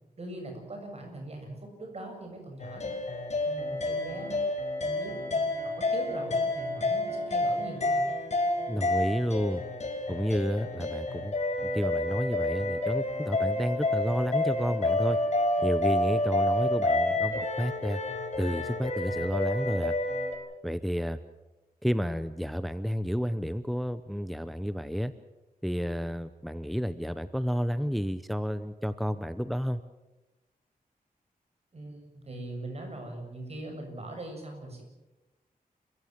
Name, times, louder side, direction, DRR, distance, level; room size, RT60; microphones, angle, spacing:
voice 1, 0.2-2.9 3.4-4.4 4.8-8.1 31.7-34.8, right 1 dB, 45° right, 3 dB, 7.2 m, -41 dB
sound 1, 2.6-20.4, left 2 dB, 50° left, 4.4 m, -29 dB
voice 2, 8.7-9.6 10.1-11.3 11.7-15.2 15.6-18.0 18.4-19.9 20.6-21.2 21.8-25.1 25.6-29.8, equal, ahead, 12 dB, 0.7 m, -31 dB
30.0 x 16.0 x 7.4 m, 1.1 s
wide cardioid pair, 120°, 15 cm